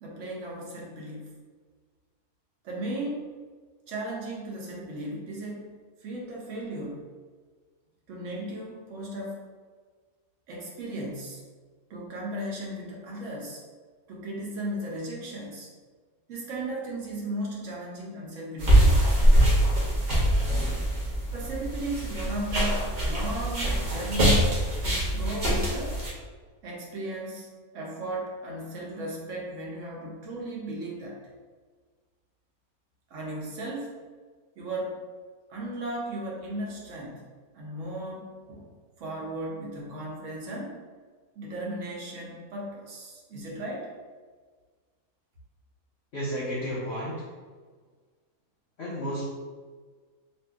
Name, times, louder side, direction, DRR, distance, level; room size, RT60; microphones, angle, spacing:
voice 1, 0.0-1.4 2.6-3.3 3.9-5.7 6.0-7.1 8.1-9.4 10.5-11.4 11.9-13.6 14.1-15.7 16.3-19.7 21.3-24.5 24.8-26.0 26.6-27.5 27.7-31.2 33.1-33.9 34.6-35.0 35.5-37.3 37.5-38.7 39.0-40.8 41.4-43.9, right 1 dB, 60° right, -3 dB, 1.0 m, -36 dB
sound 1, 18.6-26.1, right 1 dB, 40° right, 0.7 m, -23 dB
voice 2, 46.1-47.2 48.8-49.2, equal, 55° left, -6 dB, 0.9 m, -32 dB
2.6 x 2.6 x 3.4 m, 1.5 s
omnidirectional pair, 1.6 m